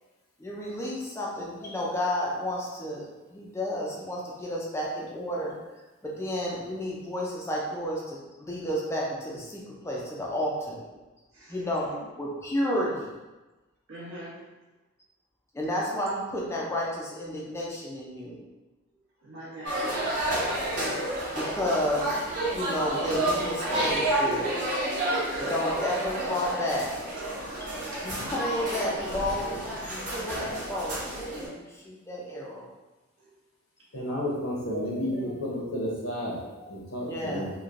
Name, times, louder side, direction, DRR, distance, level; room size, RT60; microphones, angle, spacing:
voice 1, 0.4-5.5 6.0-10.8 11.5-13.1 15.5-18.4 21.3-22.2 22.5-24.7 25.4-26.9 27.6-27.8 28.0-31.0 31.3-32.7 37.0-37.5, left 1 dB, 10° left, -3 dB, 0.3 m, -31 dB
voice 2, 11.3-11.8 13.9-14.4 19.2-20.0 27.4-28.2 28.5-29.2 33.2-33.3 34.6-35.3 36.6-36.7, right 1 dB, 65° right, -6 dB, 0.9 m, -42 dB
sound 1, 19.6-31.5, right 1 dB, 40° right, 0.7 m, -30 dB
voice 3, 33.9-36.4 36.7-37.5, equal, 75° left, -3 dB, 0.7 m, -31 dB
3.0 x 2.1 x 2.4 m, 1.1 s
head